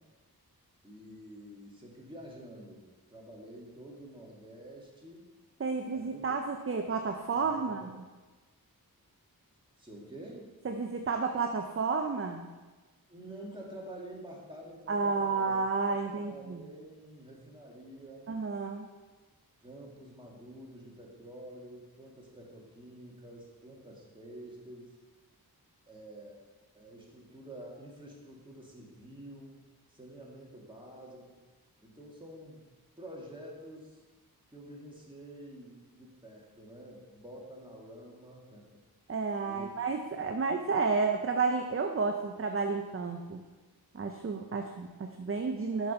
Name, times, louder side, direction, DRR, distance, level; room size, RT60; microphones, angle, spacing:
voice 1, 0.8-5.2 5.8-6.2 7.3-7.9 9.8-10.5 13.1-15.5 15.9-18.3 19.6-25.0 25.9-26.4 26.7-29.6 29.9-31.4 31.8-32.6 33.0-34.0 34.5-38.7 39.4-40.0, right 1 dB, 15° right, -3 dB, 2.1 m, -48 dB
voice 2, 5.6-7.9 10.6-12.5 14.9-16.6 18.3-18.9 39.1-43.4 43.9-45.9, right 4 dB, 35° right, 4 dB, 0.6 m, -31 dB
7.2 x 5.9 x 5.5 m, 1.3 s
wide cardioid pair, 75°, 37 cm